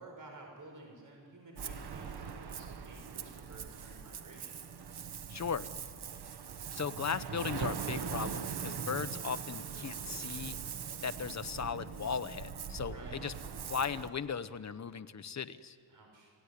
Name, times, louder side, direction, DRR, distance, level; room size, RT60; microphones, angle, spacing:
voice 1, 0.0-4.6 12.9-13.2 15.9-16.3, right 2 dB, 55° right, 1 dB, 5.7 m, -52 dB
Ocean, 1.6-14.1, right 7 dB, 85° right, 1.3 m, -41 dB
voice 2, 5.3-5.7 6.7-10.6 11.0-13.3 13.7-15.8, left 6 dB, 45° left, 11 dB, 1.0 m, -37 dB
30.0 x 18.5 x 10.0 m, 2.3 s
wide cardioid pair, 90°, 38 cm